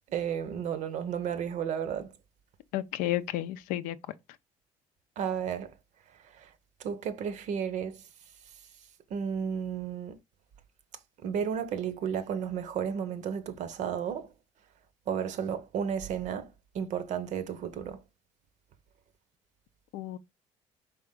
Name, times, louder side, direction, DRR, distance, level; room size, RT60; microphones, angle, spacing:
voice 1, 0.1-2.1 5.2-5.8 6.3-6.5 6.8-8.0 9.1-10.2 11.2-14.3 15.1-18.0, right 8 dB, 65° right, 0.7 m, -33 dB
voice 2, 2.7-4.0 19.9-20.2, left 14 dB, 85° left, 0.4 m, -31 dB
4.3 x 3.4 x 3.6 m
cardioid pair, 100°, 14 cm